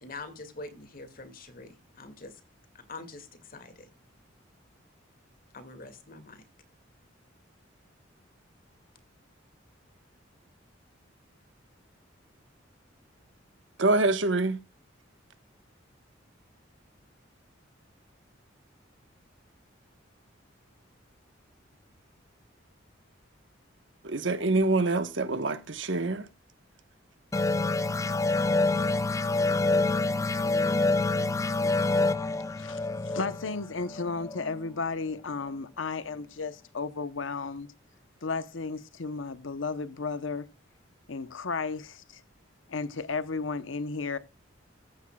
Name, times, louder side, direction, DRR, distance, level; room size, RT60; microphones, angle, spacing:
voice 1, 0.0-2.4 2.7-3.9 5.5-6.4, left 3 dB, 45° left, 2.2 m, -44 dB
voice 2, 13.8-14.6 24.0-26.3, right 2 dB, 70° right, 1.3 m, -25 dB
sound 1, 27.3-34.6, left 2 dB, 15° left, 0.5 m, -27 dB
voice 3, 32.6-37.7 38.2-40.5 41.1-42.2 42.7-44.2, left 4 dB, 80° left, 0.9 m, -34 dB
15.0 x 9.9 x 2.3 m
head